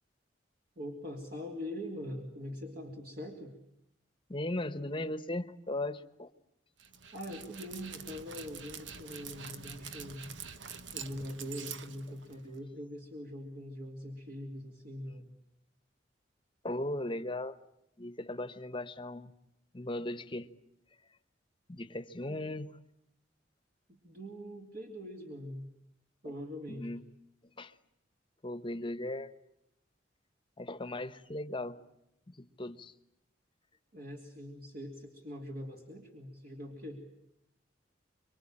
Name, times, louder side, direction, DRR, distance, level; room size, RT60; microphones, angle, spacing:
voice 1, 0.8-3.5 7.1-10.3 10.9-15.3 22.3-22.5 23.9-25.6 26.2-26.9 33.9-37.0, equal, 50° right, 2 dB, 2.9 m, -43 dB
voice 2, 4.3-6.3 16.6-17.6 18.0-19.3 19.7-20.5 21.7-22.7 26.3-26.4 26.7-27.0 27.6-27.7 28.4-29.3 30.6-31.8 32.3-32.9, left 1 dB, 25° left, 12 dB, 1.1 m, -37 dB
Dog, 6.8-12.6, right 6 dB, 80° right, 1.3 m, -46 dB
25.5 x 24.5 x 8.9 m, 0.80 s
head